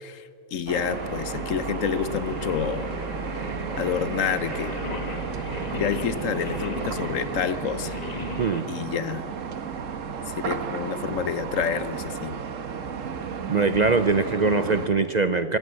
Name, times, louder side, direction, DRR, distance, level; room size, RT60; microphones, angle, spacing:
voice 1, 0.0-2.9 3.3-4.8 5.7-8.0 8.7-9.3 10.3-12.4, left 7 dB, 75° left, 13 dB, 1.3 m, -29 dB
sound 1, 0.7-14.9, right 6 dB, 75° right, 1.5 m, -33 dB
Singing, 0.9-8.6, left 3 dB, 30° left, 1.3 m, -38 dB
voice 2, 13.5-15.6, right 4 dB, 45° right, 11 dB, 0.6 m, -22 dB
25.5 x 14.0 x 7.6 m, 2.9 s
omnidirectional pair, 1.4 m